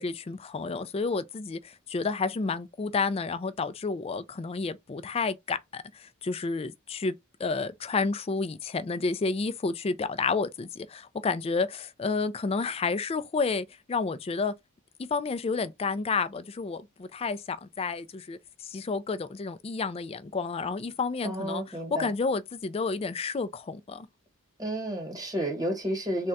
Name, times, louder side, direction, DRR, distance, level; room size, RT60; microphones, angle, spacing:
voice 1, 0.0-7.1 7.4-14.5 15.0-21.6 22.0-24.1, left 4 dB, 25° left, 0.3 m, -30 dB
voice 2, 21.2-22.1 24.6-26.3, right 1 dB, 15° right, 1.2 m, -31 dB
3.7 x 2.2 x 4.0 m
head